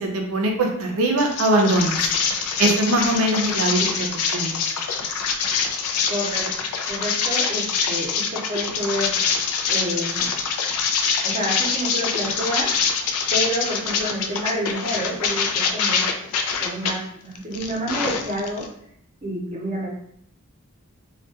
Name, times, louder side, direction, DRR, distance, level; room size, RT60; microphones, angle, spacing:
voice 1, 0.0-2.0 2.6-4.1 4.3-4.6, right 1 dB, 70° right, 2 dB, 0.5 m, -21 dB
sound 1, 1.2-16.9 17.4-18.7, left 6 dB, 80° left, 0.3 m, -24 dB
voice 2, 6.1-6.4 6.9-9.2 9.7-10.3 11.2-12.7 13.3-16.1 16.6-18.7 19.2-19.9, equal, 30° right, -3 dB, 0.7 m, -28 dB
2.2 x 2.2 x 2.7 m, 0.69 s
head